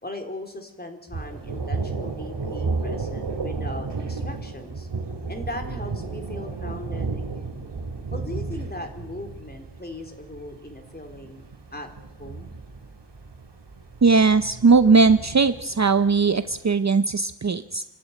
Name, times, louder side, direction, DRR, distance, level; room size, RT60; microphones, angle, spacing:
voice 1, 0.0-4.9 5.3-7.6 8.1-11.4 11.7-11.9 12.2-12.5, left 1 dB, 20° left, 5 dB, 3.3 m, -38 dB
Thunder, 1.1-16.6, right 4 dB, 70° right, 2.6 m, -33 dB
voice 2, 14.0-17.8, right 4 dB, 40° right, 11 dB, 0.7 m, -19 dB
28.0 x 12.5 x 9.4 m, 1.0 s
wide cardioid pair, 95°, 43 cm